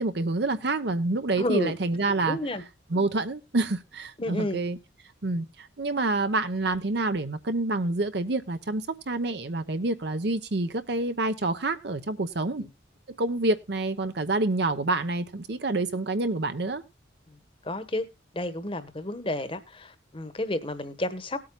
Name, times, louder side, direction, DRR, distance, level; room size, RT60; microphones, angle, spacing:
voice 1, 0.0-2.4 2.9-4.8 5.2-12.6 13.2-16.8, right 2 dB, 60° right, 0.9 m, -27 dB
voice 2, 1.4-1.7 2.2-2.6 4.2-4.6 12.6-12.7 17.6-18.1 18.3-21.4, left 1 dB, 30° left, 1.1 m, -31 dB
18.5 x 8.7 x 2.2 m
head